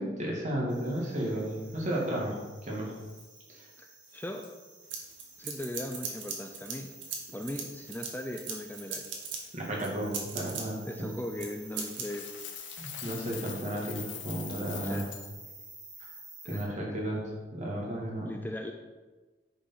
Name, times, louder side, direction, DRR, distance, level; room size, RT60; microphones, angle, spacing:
voice 1, 0.0-2.4 2.6-2.9 3.5-3.7 9.5-10.8 11.0-11.2 12.8-15.0 16.0-16.1 16.5-18.3, right 1 dB, 40° right, -3 dB, 2.4 m, -33 dB
sound 1, 0.7-16.6, right 3 dB, 25° right, 2.3 m, -51 dB
voice 2, 3.8-4.5 5.4-6.9 7.3-9.1 10.8-12.4 14.8-15.1 16.5-17.0 18.2-18.7, left 1 dB, 10° left, 3 dB, 0.5 m, -39 dB
sound 2, 4.9-6.7 7.0-9.4 9.8-10.6 11.4-11.5 11.8-12.0, right 6 dB, 85° right, 1.7 m, -37 dB
Coin (dropping), 11.8-15.3, left 10 dB, 85° left, 0.9 m, -43 dB
10.0 x 5.4 x 5.6 m, 1.2 s
head